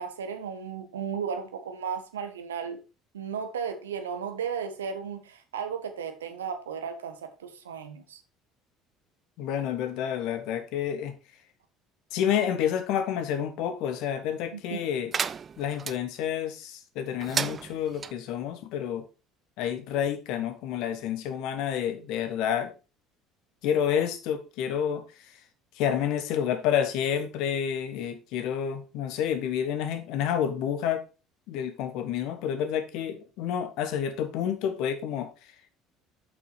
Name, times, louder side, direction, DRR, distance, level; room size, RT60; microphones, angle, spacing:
voice 1, 0.0-2.8 3.1-8.2 14.5-14.8, right 6 dB, 80° right, 1.1 m, -35 dB
voice 2, 9.4-11.1 12.1-15.1 15.6-19.1 19.6-22.7 23.6-25.0 25.8-31.0 31.5-35.3, left 9 dB, 60° left, 1.3 m, -29 dB
sound 1, 15.1-16.0 17.2-18.1, right 6 dB, 35° right, 0.4 m, -32 dB
7.1 x 5.8 x 4.5 m
figure-of-eight pair, 60°, 0 cm